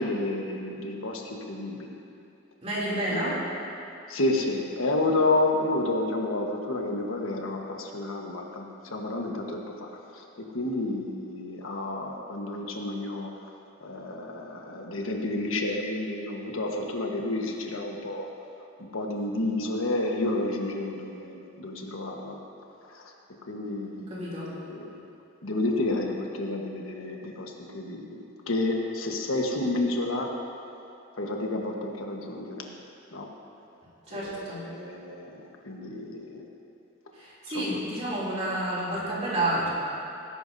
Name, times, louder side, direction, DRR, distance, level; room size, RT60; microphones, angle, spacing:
voice 1, 0.0-2.0 2.9-3.4 4.1-10.2 10.5-13.3 13.8-18.3 18.8-22.4 22.8-23.1 23.5-25.1 25.4-30.3 31.2-32.7 33.1-33.3 34.1-36.5 37.5-37.8, left 2 dB, 90° left, 1 dB, 1.3 m, -30 dB
voice 2, 2.6-3.3 24.1-24.5 34.1-34.6 37.1-39.7, right 1 dB, 30° right, -7 dB, 2.9 m, -30 dB
18.5 x 11.0 x 2.7 m, 2.7 s
head